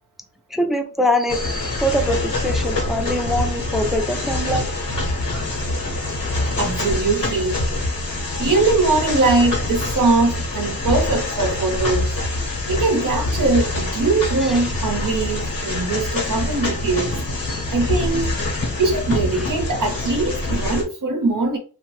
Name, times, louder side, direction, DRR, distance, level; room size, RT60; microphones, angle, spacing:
voice 1, 0.5-4.7 17.5-17.7, equal, ahead, 0.5 m, -23 dB
sound 1, 1.3-20.8, left 2 dB, 75° left, 0.9 m, -25 dB
voice 2, 6.6-7.6 8.4-12.2 12.7-17.2 17.7-18.4 18.7-21.6, right 3 dB, 65° right, 0.6 m, -21 dB
2.6 x 2.1 x 3.1 m
wide cardioid pair, 50°, 34 cm